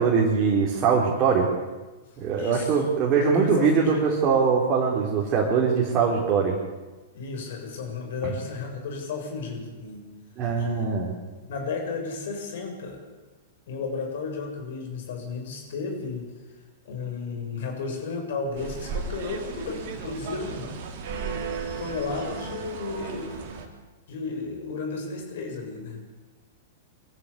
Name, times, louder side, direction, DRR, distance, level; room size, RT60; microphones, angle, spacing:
voice 1, 0.0-1.5 2.2-6.6 8.2-8.3 10.4-11.1, right 5 dB, 30° right, -2 dB, 4.3 m, -22 dB
voice 2, 2.4-2.8 3.2-4.0 7.1-10.0 10.6-10.9 11.5-13.0 13.7-16.3 16.8-20.7 21.8-23.4 24.1-26.1, left 4 dB, 60° left, 3 dB, 6.9 m, -33 dB
sound 1, 18.6-23.7, right 5 dB, 50° right, 3.5 m, -35 dB
26.0 x 14.0 x 8.5 m, 1.2 s
figure-of-eight pair, 105°, 0 cm